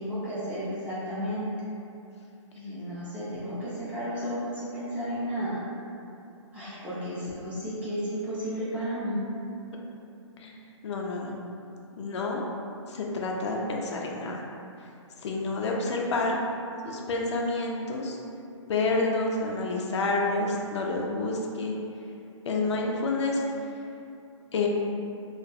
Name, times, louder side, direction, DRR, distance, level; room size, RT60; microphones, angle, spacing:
voice 1, 0.0-1.5 2.5-5.6 6.5-9.2, equal, 10° right, -11 dB, 0.3 m, -33 dB
voice 2, 9.4-9.8 10.4-10.5 10.8-11.3 11.9-12.4 12.9-14.4 14.8-14.9 15.2-16.4 16.8-18.2 18.7-21.7 22.5-23.7 24.5-24.7, left 3 dB, 60° left, -1 dB, 0.4 m, -29 dB
2.6 x 2.4 x 2.3 m, 2.6 s
hypercardioid pair, 145°, 16 cm